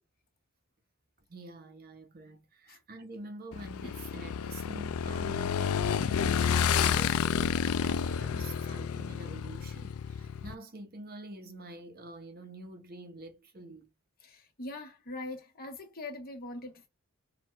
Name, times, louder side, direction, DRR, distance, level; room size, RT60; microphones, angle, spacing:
voice 1, 1.3-13.9, right 2 dB, 45° right, 0.9 m, -46 dB
Motorcycle / Engine, 3.5-10.5, left 7 dB, 70° left, 0.4 m, -30 dB
voice 2, 14.2-16.9, left 2 dB, 45° left, 1.4 m, -42 dB
4.6 x 2.5 x 4.5 m
head